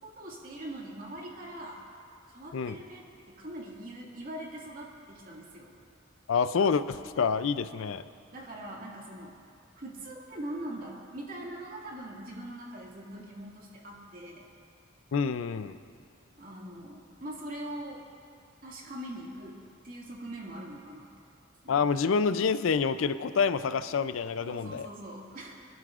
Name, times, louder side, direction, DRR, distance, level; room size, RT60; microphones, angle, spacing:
voice 1, 0.0-1.8 2.3-5.7 7.7-7.9 8.3-9.3 9.8-14.5 16.4-18.1 18.6-21.1 21.6-21.8 24.4-25.7, right 1 dB, 45° right, -3 dB, 2.0 m, -42 dB
voice 2, 6.3-8.0 15.1-15.8 21.7-24.9, left 5 dB, 75° left, 13 dB, 0.4 m, -27 dB
27.0 x 11.0 x 2.5 m, 2.4 s
head